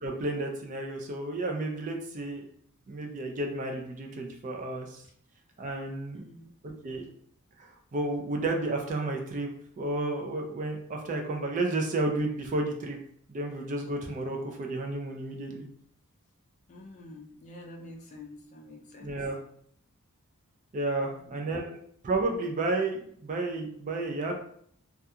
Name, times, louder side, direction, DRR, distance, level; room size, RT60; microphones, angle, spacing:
voice 1, 0.0-2.4 2.9-5.0 5.6-6.3 6.8-7.1 7.6-9.5 9.8-13.0 13.3-15.7 19.0-19.4 20.7-21.8 22.0-24.4, right 2 dB, 35° right, 1 dB, 0.4 m, -32 dB
voice 2, 6.1-6.5 16.7-19.2 21.1-21.8, left 1 dB, 35° left, 0 dB, 0.4 m, -48 dB
2.3 x 2.3 x 2.7 m, 0.63 s
head